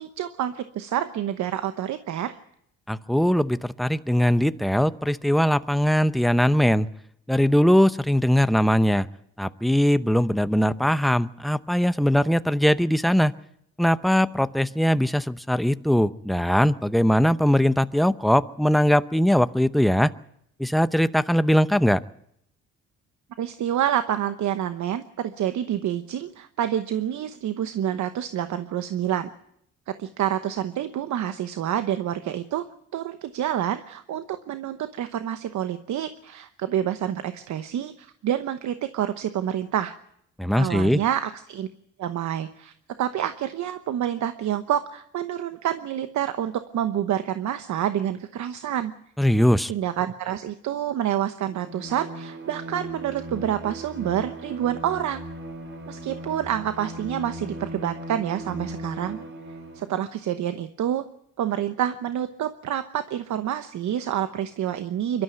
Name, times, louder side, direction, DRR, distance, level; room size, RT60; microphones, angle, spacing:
voice 1, 0.0-2.4 23.4-29.3 29.9-32.7 32.9-39.9 40.6-41.7 42.0-42.7 43.0-48.9 49.7-55.2 55.9-59.2 59.7-61.0 61.4-65.2, right 10 dB, 70° right, 10 dB, 1.0 m, -28 dB
voice 2, 2.9-6.9 7.3-9.1 9.4-13.3 13.8-20.1 20.6-22.0 40.4-41.0 49.2-49.7, equal, ahead, 13 dB, 0.7 m, -21 dB
Bowed string instrument, 51.5-60.0, right 1 dB, 40° right, 3.7 m, -38 dB
23.5 x 13.0 x 9.1 m, 0.74 s
cardioid pair, 90°, 30 cm